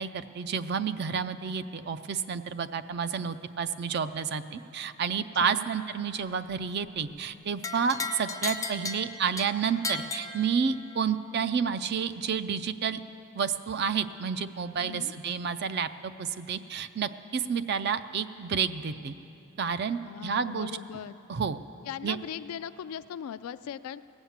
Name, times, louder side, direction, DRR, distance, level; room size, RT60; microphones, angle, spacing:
voice 1, 0.0-13.0 13.3-19.1 19.6-20.7 21.3-21.6 22.0-22.2, right 6 dB, 50° right, 13 dB, 0.4 m, -30 dB
voice 2, 5.3-5.7 14.8-15.1 20.0-21.1 21.9-24.0, left 9 dB, 85° left, 15 dB, 0.3 m, -39 dB
sound 1, 7.6-11.0, left 3 dB, 15° left, 0.4 m, -36 dB
17.5 x 7.2 x 7.2 m, 2.9 s
head